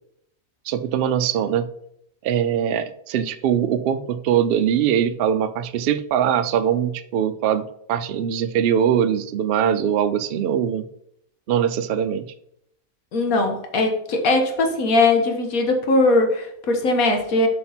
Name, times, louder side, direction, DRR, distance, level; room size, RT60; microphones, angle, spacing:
voice 1, 0.6-1.7 2.2-10.9 11.5-12.3, right 9 dB, 60° right, 11 dB, 0.6 m, -22 dB
voice 2, 13.1-17.5, left 2 dB, 80° left, 5 dB, 1.5 m, -20 dB
8.0 x 5.2 x 4.3 m, 0.72 s
omnidirectional pair, 1.5 m